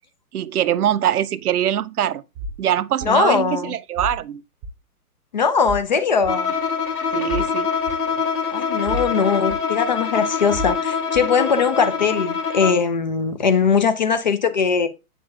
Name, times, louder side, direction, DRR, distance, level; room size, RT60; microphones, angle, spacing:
voice 1, 0.3-2.2 2.6-4.4 7.1-7.7, right 10 dB, 75° right, 0.5 m, -22 dB
sound 1, 2.4-2.6 3.0-3.1 4.0-4.2 4.6-4.7 5.6-5.9 6.2-6.3 7.3-7.5 7.9-8.0 8.9-9.1 9.5-9.6 10.5-10.8 11.1-11.3, equal, 20° right, 0.8 m, -30 dB
voice 2, 3.0-3.7 5.3-6.5 8.5-14.9, left 5 dB, 30° left, 0.5 m, -20 dB
Bowed string instrument, 6.3-12.9, left 5 dB, 75° left, 1.8 m, -25 dB
8.6 x 6.7 x 2.3 m
figure-of-eight pair, 130°, 46 cm